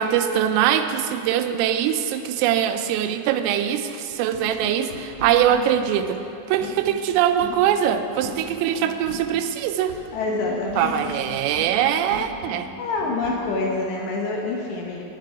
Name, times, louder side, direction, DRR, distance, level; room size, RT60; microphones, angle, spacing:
voice 1, 0.0-6.2 6.5-10.0 10.8-12.7, right 10 dB, 90° right, 9 dB, 3.2 m, -22 dB
sound 1, 4.1-13.7, equal, 40° right, 2.6 m, -39 dB
voice 2, 10.1-11.0 12.8-15.0, left 3 dB, 70° left, -1 dB, 2.8 m, -26 dB
19.0 x 6.8 x 4.7 m, 2.9 s
omnidirectional pair, 5.8 m